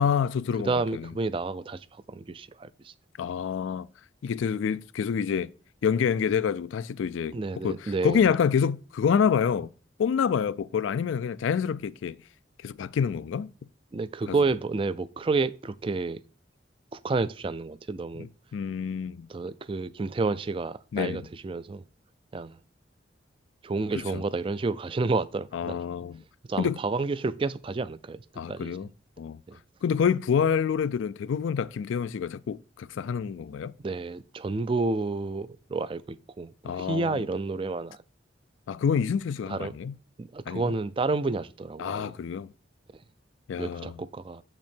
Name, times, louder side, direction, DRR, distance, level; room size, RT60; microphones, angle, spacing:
voice 1, 0.0-1.1 3.2-3.9 4.2-5.5 5.8-7.4 7.6-9.7 10.0-12.2 12.6-13.5 14.3-14.4 18.1-19.3 20.9-21.2 23.9-24.2 25.5-26.2 26.6-26.8 28.4-28.9 29.2-29.4 29.8-33.7 36.6-37.2 38.7-39.9 40.5-40.7 41.8-42.5 43.5-44.0, left 7 dB, 75° left, 0.3 m, -27 dB
voice 2, 0.6-1.8 2.1-2.9 7.3-8.2 13.9-16.2 16.9-18.3 19.3-21.8 22.3-22.6 23.6-25.8 26.5-28.2 28.5-28.7 29.5-29.6 33.8-38.0 39.5-39.7 40.2-42.1 43.6-44.4, right 3 dB, 25° right, 0.3 m, -30 dB
7.4 x 6.0 x 4.4 m
head